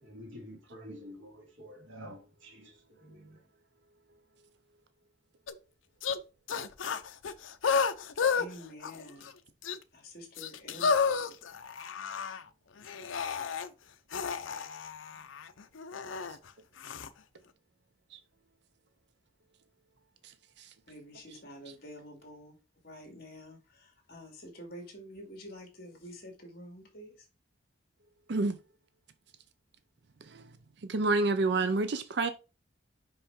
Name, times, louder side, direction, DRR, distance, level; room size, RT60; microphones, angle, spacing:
voice 1, 0.0-2.7 3.0-3.4, equal, 80° right, 2.4 m, -48 dB
sound 1, 5.5-5.6 6.0-6.2 6.5-8.5 8.8-9.3 9.6-9.8 10.4-12.4 12.8-13.7 14.1-16.4 16.8-17.1, left 5 dB, 85° left, 0.6 m, -31 dB
voice 2, 8.3-9.3 9.9-10.9 20.9-22.6 22.8-27.1, equal, 55° left, 2.4 m, -48 dB
voice 3, 30.9-32.3, right 3 dB, 60° right, 0.5 m, -27 dB
5.5 x 5.5 x 3.6 m
head